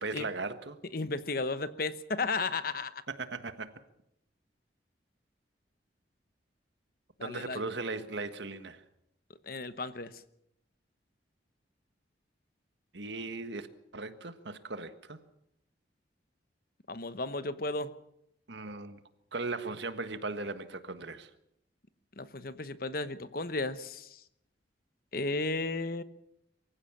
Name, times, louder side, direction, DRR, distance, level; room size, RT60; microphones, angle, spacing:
voice 1, 0.0-0.8 3.1-3.7 7.2-8.8 12.9-15.2 18.5-19.0 19.3-21.3, right 3 dB, 75° right, 1.5 m, -38 dB
voice 2, 0.9-3.0 7.2-7.6 9.5-10.1 16.9-17.9 22.2-24.2 25.1-26.0, left 3 dB, 50° left, 1.0 m, -34 dB
23.5 x 15.5 x 7.3 m
head